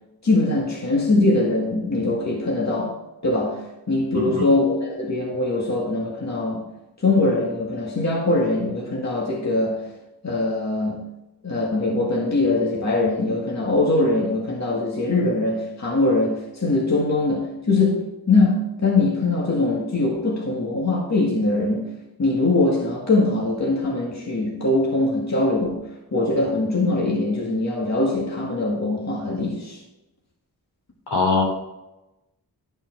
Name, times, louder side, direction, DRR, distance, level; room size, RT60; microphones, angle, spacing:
voice 1, 0.2-3.0 3.2-6.7 7.0-9.9 10.2-11.1 11.4-21.9 22.2-29.8, left 2 dB, 45° left, -2 dB, 2.0 m, -22 dB
voice 2, 4.1-4.5 31.1-31.4, left 3 dB, 75° left, -1 dB, 3.4 m, -22 dB
12.0 x 5.4 x 4.6 m, 0.94 s
cardioid pair, 55°, 39 cm